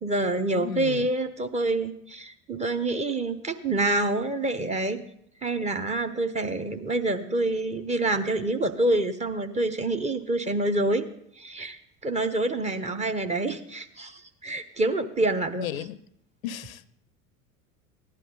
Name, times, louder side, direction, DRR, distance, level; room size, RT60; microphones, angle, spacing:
voice 1, 0.0-5.0 5.4-11.0 11.4-15.7, right 2 dB, 15° right, 0.8 m, -27 dB
voice 2, 0.5-1.1 15.6-16.0 16.4-16.8, left 11 dB, 75° left, 0.6 m, -34 dB
15.0 x 10.5 x 3.8 m
figure-of-eight pair, 75°, 42 cm